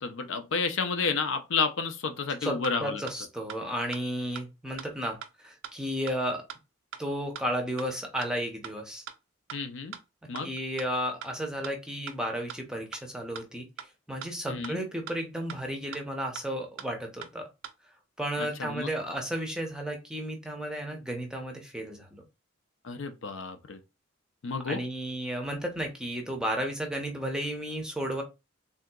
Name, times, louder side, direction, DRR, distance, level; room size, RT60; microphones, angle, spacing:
voice 1, 0.0-3.0 9.5-9.9 10.3-10.5 14.5-14.8 18.4-18.9 22.8-23.8 24.4-24.8, left 4 dB, 65° left, 0.5 m, -31 dB
sound 1, 2.6-2.7 3.1-3.2 3.5-3.6 3.9-4.0 4.4-4.5 4.8-4.9 5.2-5.3 5.6-5.7 6.1-6.2 6.5-6.6 6.9-7.0 7.4-7.5 7.8-7.9 8.2-8.3 8.6-8.7 9.1-9.2 9.5-9.6 9.9-10.0 10.4-10.5 10.8-10.9 11.2-11.3 11.6-11.7 12.1-12.2 12.5-12.6 12.9-13.0 13.4-13.5 13.8-13.9 14.2-14.3 14.6-14.7 15.1-15.2 15.5-15.6 15.9-16.0 16.4-16.5 16.8-16.9 17.2-17.3 17.6-17.7, right 8 dB, 70° right, 0.4 m, -40 dB
voice 2, 2.8-6.4 7.0-9.0 10.4-13.7 14.1-17.5 18.2-22.2 24.7-28.2, equal, 5° right, 0.6 m, -33 dB
3.6 x 2.7 x 2.2 m
head